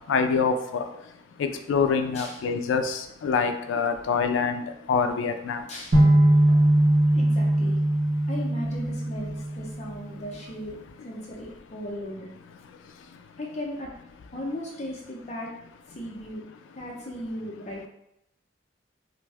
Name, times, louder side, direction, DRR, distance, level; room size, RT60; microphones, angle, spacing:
voice 1, 0.1-0.8 1.4-5.6, left 5 dB, 80° left, 7 dB, 0.3 m, -25 dB
voice 2, 5.7-6.0 7.1-7.8 8.3-10.8 11.0-12.3 13.4-13.9 14.3-15.5 15.9-16.4 16.8-17.9, left 1 dB, 35° left, -2 dB, 0.6 m, -36 dB
sound 1, 5.9-9.9, right 1 dB, 65° right, 0.9 m, -21 dB
2.5 x 2.2 x 3.3 m, 0.79 s
head